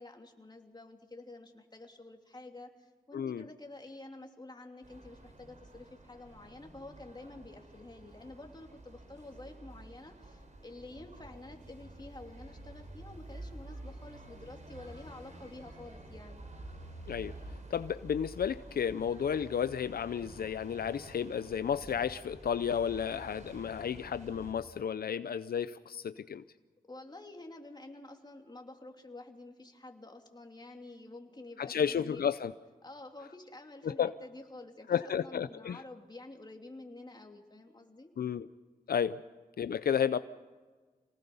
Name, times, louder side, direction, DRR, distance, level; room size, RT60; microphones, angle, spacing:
voice 1, 0.0-16.4 26.8-32.3 32.8-38.1, left 2 dB, 25° left, 3 dB, 3.0 m, -49 dB
voice 2, 3.1-3.4 17.1-17.3 17.7-26.4 31.6-32.5 33.9-34.1 34.9-35.8 38.2-38.5 38.9-39.2 39.6-40.2, left 8 dB, 75° left, 13 dB, 0.5 m, -32 dB
sound 1, 4.8-24.5, right 1 dB, 50° right, 4.3 m, -50 dB
26.5 x 19.0 x 5.5 m, 1.4 s
cardioid pair, 65°, 16 cm